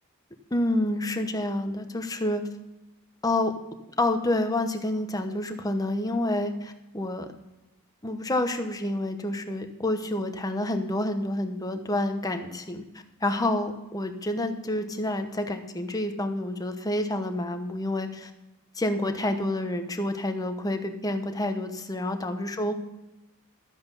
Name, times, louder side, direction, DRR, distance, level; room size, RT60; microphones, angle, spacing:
voice 1, 0.5-2.4 3.2-3.5 4.0-7.3 8.0-12.8 13.2-18.3 18.7-22.7, left 1 dB, 15° left, 6 dB, 1.0 m, -28 dB
12.5 x 7.7 x 5.4 m, 1.0 s
head